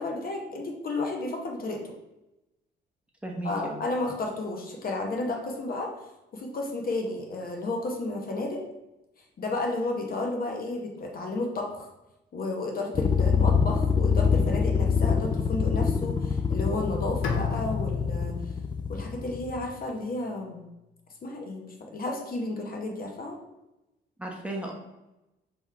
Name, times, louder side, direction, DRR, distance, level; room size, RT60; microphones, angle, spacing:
voice 1, 0.0-1.9 3.4-5.9 6.3-8.6 9.4-11.9 12.3-18.3 18.9-20.6 21.2-23.4, left 2 dB, 45° left, 1 dB, 0.9 m, -32 dB
voice 2, 3.2-3.8 24.2-24.7, right 1 dB, 5° right, -1 dB, 0.9 m, -35 dB
sound 1, 12.9-19.6, left 6 dB, 20° left, 0.4 m, -25 dB
Bowed string instrument, 17.2-20.3, left 6 dB, 80° left, 0.6 m, -36 dB
3.6 x 3.0 x 4.6 m, 0.95 s
cardioid pair, 90°, 20 cm